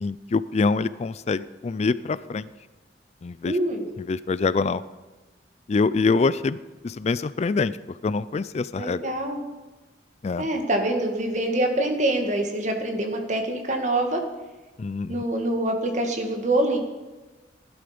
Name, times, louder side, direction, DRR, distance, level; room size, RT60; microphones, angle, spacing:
voice 1, 0.0-2.5 3.2-3.5 4.1-4.8 5.7-6.6 6.8-7.7 8.0-9.1 10.2-10.5 14.8-15.1, left 4 dB, 40° left, 17 dB, 0.4 m, -25 dB
voice 2, 3.5-3.9 8.7-9.4 10.4-14.2 15.1-16.8, right 1 dB, 45° right, 4 dB, 1.9 m, -25 dB
16.5 x 11.5 x 5.2 m, 1.2 s
head